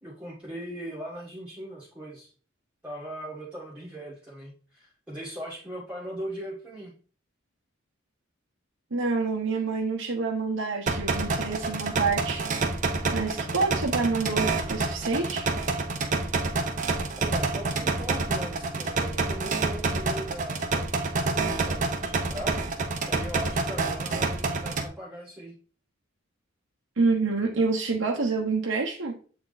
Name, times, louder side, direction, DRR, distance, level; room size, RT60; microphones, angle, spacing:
voice 1, 0.0-2.3 2.8-6.9 17.2-22.6 23.1-25.5, right 1 dB, 5° right, -7 dB, 1.6 m, -39 dB
voice 2, 8.9-12.5 13.1-15.5 27.0-29.1, right 4 dB, 70° right, -1 dB, 1.0 m, -27 dB
sound 1, 10.9-24.9, right 3 dB, 40° right, 0.9 m, -28 dB
7.9 x 3.5 x 4.0 m, 0.40 s
head